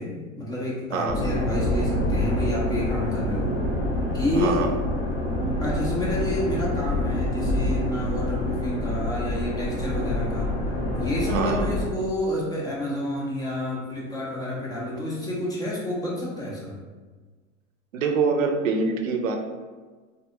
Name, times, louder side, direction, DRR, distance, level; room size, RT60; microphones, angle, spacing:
voice 1, 0.0-3.5 4.1-4.7 5.6-10.5 11.0-16.8, left 1 dB, 10° left, -5 dB, 0.4 m, -29 dB
sound 1, 1.1-11.9, left 1 dB, 65° left, 1.2 m, -26 dB
voice 2, 4.3-4.7 11.3-11.7 17.9-19.4, right 4 dB, 85° right, 4 dB, 0.5 m, -25 dB
2.5 x 2.3 x 2.7 m, 1.4 s
hypercardioid pair, 110°, 38 cm